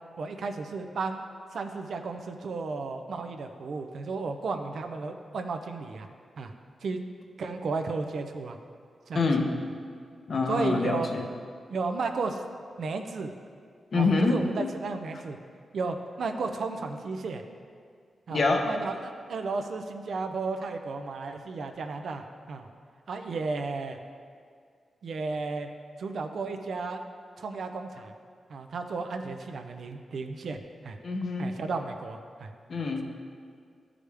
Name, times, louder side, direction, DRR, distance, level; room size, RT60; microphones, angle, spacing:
voice 1, 0.2-1.2 1.5-6.1 6.4-6.5 6.8-7.0 7.4-8.6 9.1-9.3 10.5-11.1 11.7-12.4 12.8-13.3 13.9-15.4 15.7-17.4 18.3-22.7 23.1-24.0 25.0-25.7 26.0-27.0 27.4-28.1 28.5-31.0 31.4-32.5, right 4 dB, 60° right, 6 dB, 0.5 m, -33 dB
voice 2, 9.1-9.6 10.3-11.3 13.9-14.4 18.3-18.7 31.0-31.6 32.7-33.0, left 3 dB, 45° left, 3 dB, 0.7 m, -26 dB
12.5 x 4.9 x 3.4 m, 2.2 s
wide cardioid pair, 170°, 0 cm